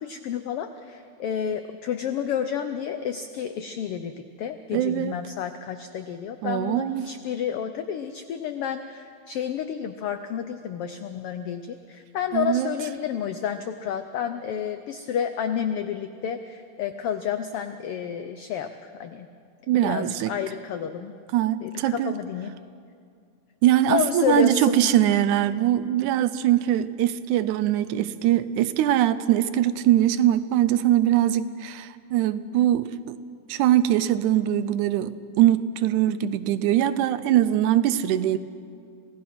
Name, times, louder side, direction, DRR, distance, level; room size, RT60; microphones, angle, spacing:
voice 1, 0.0-19.3 19.8-21.1 21.6-22.5 23.9-25.2, left 8 dB, 85° left, 8 dB, 1.3 m, -30 dB
voice 2, 4.7-5.2 6.4-7.1 12.3-12.7 19.7-20.3 21.3-22.1 23.6-33.2 33.5-38.4, right 12 dB, 80° right, 14 dB, 2.1 m, -22 dB
26.5 x 17.0 x 6.0 m, 2.3 s
omnidirectional pair, 3.5 m